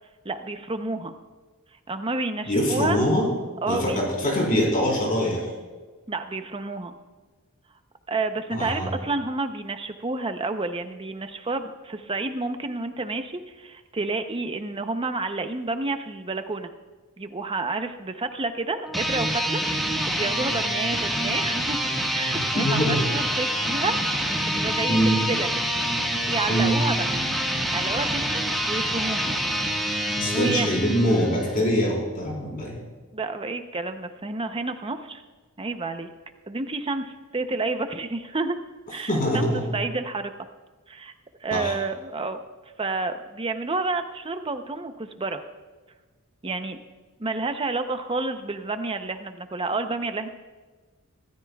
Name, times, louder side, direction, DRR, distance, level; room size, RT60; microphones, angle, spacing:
voice 1, 0.2-1.1 1.9-3.0 3.6-4.1 6.1-6.9 8.1-16.7 17.2-19.6 20.1-25.6 26.3-27.1 27.7-29.3 30.2-30.7 33.1-35.2 35.6-36.1 36.5-38.6 38.9-40.3 40.9-41.1 41.4-42.4 42.8-45.4 46.4-46.8 47.2-50.3, right 3 dB, 25° right, 8 dB, 0.7 m, -30 dB
voice 2, 2.5-3.3 3.7-5.5 8.5-8.9 22.5-23.1 24.9-25.2 26.5-26.8 30.2-32.7 39.1-39.7 41.5-41.7, equal, 40° left, -2 dB, 4.0 m, -23 dB
sound 1, 18.8-31.6, equal, ahead, 1.6 m, -26 dB
26.0 x 13.5 x 2.4 m, 1.3 s
head